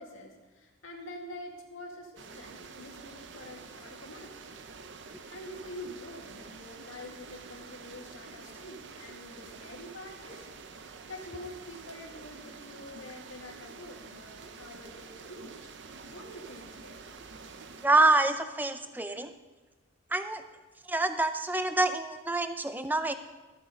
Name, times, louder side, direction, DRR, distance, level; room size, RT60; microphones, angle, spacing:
voice 1, 0.0-4.4 5.3-10.5 10.8-15.6 16.1-17.1, left 1 dB, 85° left, 0 dB, 2.1 m, -46 dB
sound 1, 2.2-17.9, right 4 dB, 60° right, 0.7 m, -48 dB
voice 2, 17.8-19.3 20.1-20.4 20.9-23.1, right 2 dB, 10° right, 9 dB, 0.5 m, -26 dB
13.5 x 8.3 x 5.2 m, 1.2 s
head